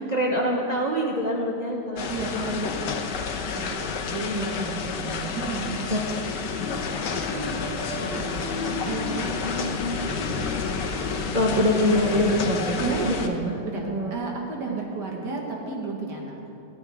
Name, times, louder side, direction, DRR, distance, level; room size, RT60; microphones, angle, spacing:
voice 1, 0.1-2.7 3.4-5.3 5.9-6.0 7.3-7.7 8.0-8.5 11.3-13.6 13.9-14.2 14.7-14.8, equal, 30° right, -2 dB, 1.0 m, -26 dB
sound 1, 2.0-13.3, left 5 dB, 90° left, 1.5 m, -30 dB
voice 2, 2.1-2.5 5.3-5.8 8.8-9.3 12.8-13.1 13.6-16.4, right 5 dB, 80° right, 0 dB, 2.1 m, -32 dB
sound 2, 6.8-13.2, left 2 dB, 30° left, 2.0 m, -34 dB
18.0 x 14.5 x 3.5 m, 2.8 s
omnidirectional pair, 1.8 m